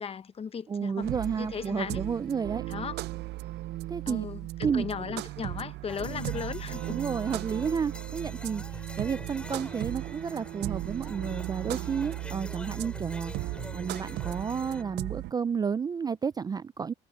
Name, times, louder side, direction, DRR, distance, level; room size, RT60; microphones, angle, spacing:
voice 1, 0.0-1.1 1.4-2.0 2.7-3.0 4.1-7.0, left 6 dB, 35° left, 0.9 m, -36 dB
voice 2, 0.7-2.6 3.9-4.3 4.6-5.2 6.9-13.3 13.7-16.9, right 6 dB, 25° right, 0.3 m, -31 dB
sound 1, 1.0-15.3, right 17 dB, 80° right, 0.6 m, -36 dB
sound 2, 5.9-14.8, left 1 dB, 5° left, 3.3 m, -45 dB
cardioid pair, 110°, 17 cm